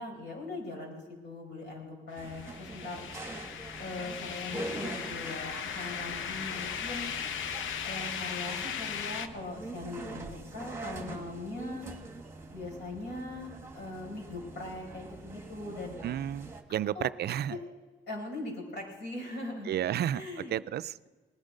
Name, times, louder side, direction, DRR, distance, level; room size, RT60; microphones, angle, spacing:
voice 1, 0.0-3.0 3.8-7.1 7.8-11.9 12.5-16.0 16.9-17.1 17.5-17.6 18.1-19.9 20.1-20.5, left 2 dB, 60° left, 0 dB, 5.1 m, -40 dB
sound 1, 2.2-9.3, left 8 dB, 80° left, 0.8 m, -37 dB
sound 2, 2.2-16.6, right 2 dB, 15° right, 1.7 m, -44 dB
voice 2, 16.0-17.6 19.7-21.0, right 11 dB, 55° right, 16 dB, 0.4 m, -32 dB
19.0 x 10.0 x 5.3 m, 1.4 s
cardioid pair, 90°, 20 cm